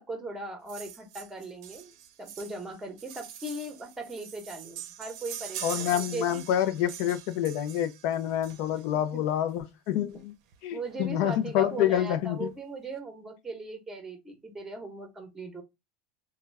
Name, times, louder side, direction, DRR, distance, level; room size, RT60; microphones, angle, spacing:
voice 1, 0.0-1.9 2.2-6.4 9.1-9.2 10.7-15.6, right 2 dB, 10° right, 0.9 m, -39 dB
sound 1, 0.7-9.0 10.1-10.2 10.5-10.6 10.8-11.0 11.3-11.9 12.4-12.5, right 10 dB, 65° right, 0.5 m, -43 dB
voice 2, 5.6-10.3 10.6-12.5, left 11 dB, 60° left, 0.5 m, -27 dB
2.2 x 2.2 x 3.3 m
supercardioid pair, 125°, 3 cm